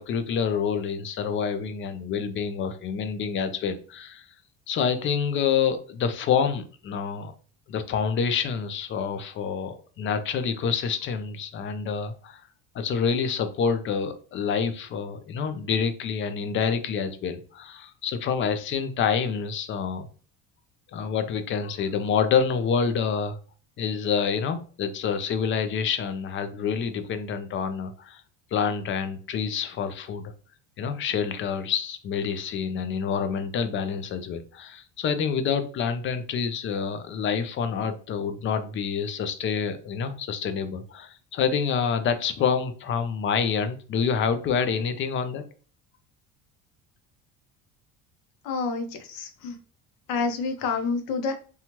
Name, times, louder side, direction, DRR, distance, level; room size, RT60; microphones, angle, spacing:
voice 1, 0.0-4.2 4.7-7.3 7.7-12.4 12.7-20.1 20.9-23.4 23.8-28.2 28.5-30.3 30.8-45.4, left 6 dB, 35° left, 9 dB, 0.4 m, -27 dB
voice 2, 48.4-49.6 50.1-51.4, left 4 dB, 75° left, 6 dB, 0.7 m, -28 dB
2.9 x 2.3 x 2.8 m, 0.40 s
cardioid pair, 125°, 34 cm